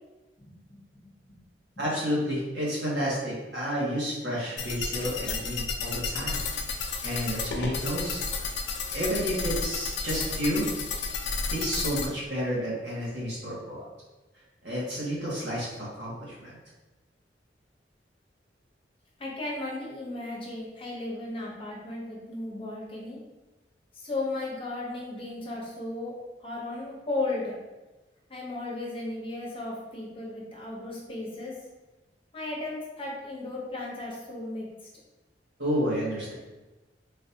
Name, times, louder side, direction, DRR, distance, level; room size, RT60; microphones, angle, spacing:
voice 1, 0.4-1.1 4.9-5.0 19.2-23.2 23.9-26.1 26.4-27.6 28.3-31.5 32.3-34.7, left 2 dB, 30° left, -4 dB, 0.9 m, -35 dB
voice 2, 1.8-6.4 7.0-8.3 8.9-10.7 11.5-13.9 14.6-16.6 35.6-36.3, equal, 75° right, -6 dB, 1.4 m, -30 dB
sound 1, 4.6-12.1, left 4 dB, 70° left, 0.5 m, -32 dB
3.9 x 2.6 x 2.7 m, 1.1 s
head